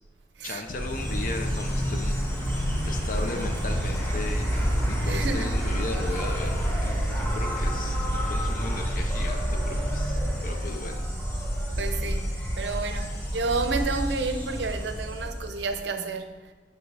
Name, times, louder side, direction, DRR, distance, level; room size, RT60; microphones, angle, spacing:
voice 1, 0.4-2.2 2.5-11.0, left 2 dB, 50° left, 0.6 m, -36 dB
Insect, 0.7-15.8, equal, 10° left, 1.3 m, -28 dB
voice 2, 5.1-5.5 11.8-12.3 12.6-16.5, right 3 dB, 70° right, 0.6 m, -30 dB
7.5 x 5.9 x 3.3 m
head